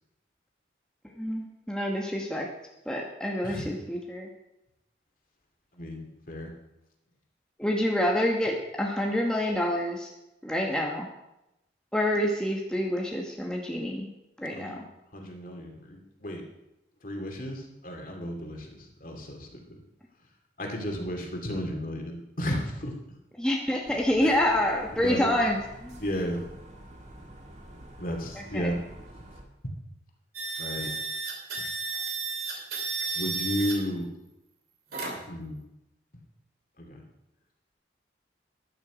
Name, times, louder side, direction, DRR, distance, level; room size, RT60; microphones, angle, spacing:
voice 1, 1.2-2.5 2.9-4.3 7.6-10.1 10.4-11.1 11.9-14.1 14.4-14.7 23.4-26.0 28.3-28.7, left 1 dB, 5° left, -1 dB, 1.2 m, -27 dB
voice 2, 5.8-6.5 14.5-14.8 15.1-16.4 17.0-19.8 20.6-22.9 24.2-24.3 25.0-25.3 26.0-26.4 28.0-28.8 29.6-29.7 30.6-30.9 33.1-34.1 35.3-35.6 36.8-37.0, equal, 45° left, 2 dB, 2.5 m, -33 dB
sound 1, 23.9-29.4, right 1 dB, 40° right, 1.8 m, -48 dB
sound 2, 30.3-33.7 34.9-35.3, right 4 dB, 55° right, 2.9 m, -32 dB
14.0 x 11.0 x 5.1 m, 0.92 s
head